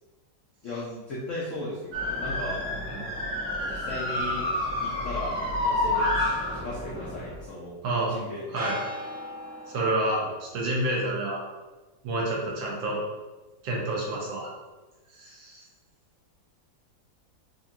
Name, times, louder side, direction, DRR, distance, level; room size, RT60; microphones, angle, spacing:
voice 1, 0.6-2.6 3.5-4.5 4.8-6.1 6.6-7.7 8.1-8.4 10.2-10.3, left 1 dB, 80° left, -5 dB, 0.6 m, -36 dB
sound 1, 1.9-7.4 8.6-10.2, left 1 dB, 15° right, 0.4 m, -30 dB
voice 2, 7.8-8.1 8.5-8.8 9.7-11.4 12.0-13.0 13.6-14.5 15.2-15.7, right 1 dB, 80° right, -3 dB, 1.7 m, -29 dB
4.5 x 2.5 x 2.8 m, 1.2 s
omnidirectional pair, 2.1 m